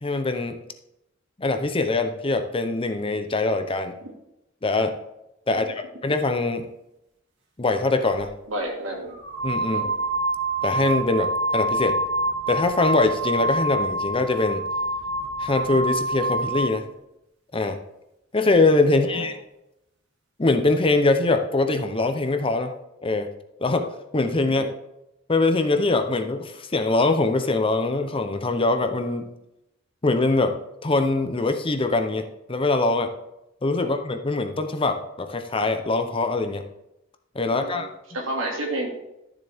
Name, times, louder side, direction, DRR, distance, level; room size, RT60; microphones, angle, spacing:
voice 1, 0.0-0.6 1.4-3.9 4.6-5.0 5.5-6.7 7.6-8.3 9.4-9.9 10.6-12.0 12.5-14.6 15.4-16.8 17.5-17.8 18.3-19.3 20.4-22.7 23.0-23.3 23.6-23.9 24.1-24.7 25.3-29.3 30.0-30.6 30.8-33.1 33.6-36.6 37.3-37.9, left 3 dB, 25° left, 7 dB, 0.7 m, -23 dB
sound 1, 8.1-8.3 9.1-16.8, right 2 dB, 60° right, 2.3 m, -26 dB
voice 2, 8.5-9.1 9.7-9.9 18.9-19.3 24.5-24.7 33.8-33.9 37.4-37.8 38.1-38.9, right 1 dB, 75° right, 0 dB, 2.5 m, -31 dB
12.5 x 7.1 x 3.5 m, 0.88 s
head